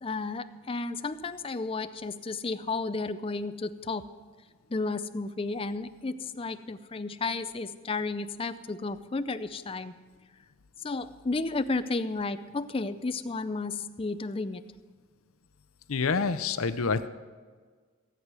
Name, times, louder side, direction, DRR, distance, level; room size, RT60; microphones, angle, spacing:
voice 1, 0.0-4.1 4.7-9.9 10.8-14.6, left 3 dB, 25° left, 11 dB, 0.5 m, -32 dB
voice 2, 15.9-17.1, left 4 dB, 85° left, 12 dB, 0.7 m, -27 dB
16.5 x 8.2 x 6.2 m, 1.5 s
head